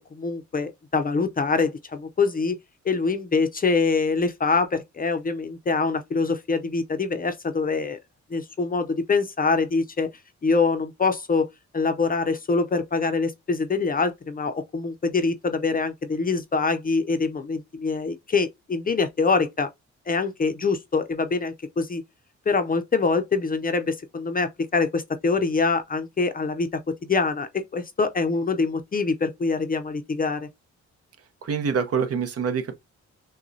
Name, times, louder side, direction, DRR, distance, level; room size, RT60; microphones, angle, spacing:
voice 1, 0.1-2.6 2.8-8.0 8.3-10.1 10.4-11.5 11.7-19.7 20.1-22.0 22.5-30.5, left 4 dB, 30° left, 0.5 m, -24 dB
voice 2, 31.4-32.8, right 6 dB, 55° right, 0.8 m, -25 dB
6.0 x 2.2 x 2.6 m
cardioid pair, 110°, 30 cm